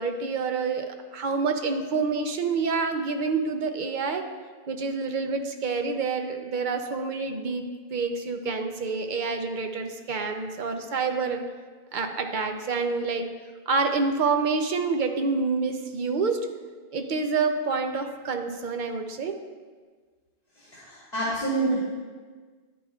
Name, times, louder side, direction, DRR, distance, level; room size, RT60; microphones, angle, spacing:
voice 1, 0.0-4.3 4.7-11.4 11.9-13.3 13.7-16.5 16.9-19.4, right 4 dB, 50° right, 5 dB, 0.8 m, -27 dB
voice 2, 20.7-21.8, right 2 dB, 40° left, -12 dB, 3.1 m, -27 dB
11.0 x 9.2 x 2.3 m, 1.5 s
omnidirectional pair, 1.1 m